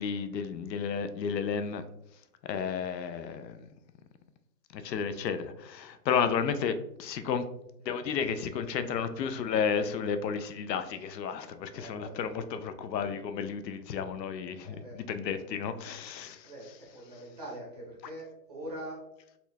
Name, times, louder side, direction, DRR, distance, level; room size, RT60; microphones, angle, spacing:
voice 1, 0.0-1.8 2.5-3.7 4.7-6.7 7.0-7.5 7.9-16.5, left 6 dB, 80° left, 0.6 m, -32 dB
voice 2, 11.7-12.3 14.6-15.0 15.5-15.6 16.4-19.0, right 1 dB, 25° right, 0.6 m, -43 dB
4.2 x 2.3 x 2.6 m
hypercardioid pair, 160°, 50 cm